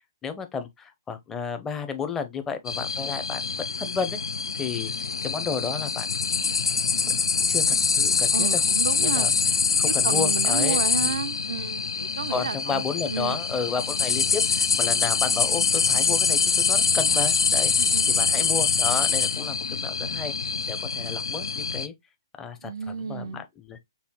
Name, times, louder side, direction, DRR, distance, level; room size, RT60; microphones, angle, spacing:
voice 1, 0.2-4.2 4.6-4.9 5.2-6.1 7.1-8.6 9.0-9.3 9.8-11.2 12.3-17.7 18.1-20.3 20.7-21.9 22.4-23.8, left 5 dB, 15° left, 0.5 m, -32 dB
sound 1, 2.7-21.9, left 5 dB, 80° left, 0.4 m, -24 dB
voice 2, 8.3-9.3 10.0-13.4 17.8-18.1 22.6-23.5, right 6 dB, 70° right, 0.4 m, -32 dB
5.4 x 2.1 x 2.9 m
hypercardioid pair, 135°, 2 cm